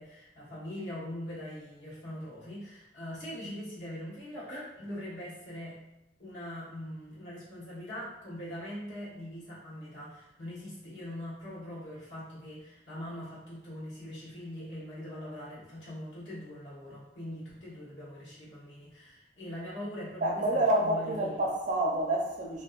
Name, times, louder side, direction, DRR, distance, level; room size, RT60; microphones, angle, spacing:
voice 1, 0.0-5.8 6.2-21.4, left 1 dB, 80° left, -7 dB, 1.1 m, -42 dB
voice 2, 20.2-22.6, right 1 dB, 40° right, 0 dB, 0.5 m, -28 dB
2.6 x 2.3 x 2.4 m, 0.88 s
head